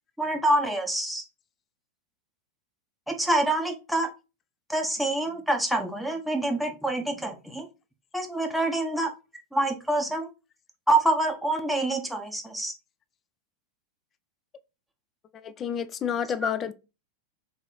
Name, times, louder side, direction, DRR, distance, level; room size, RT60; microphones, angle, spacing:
voice 1, 0.2-1.2 3.1-4.1 4.7-7.7 8.1-9.1 9.5-10.3 10.9-12.7, right 2 dB, ahead, 0.7 m, -26 dB
voice 2, 15.4-16.7, left 8 dB, 25° left, 0.4 m, -29 dB
3.6 x 3.1 x 3.8 m
figure-of-eight pair, 90°, 0 cm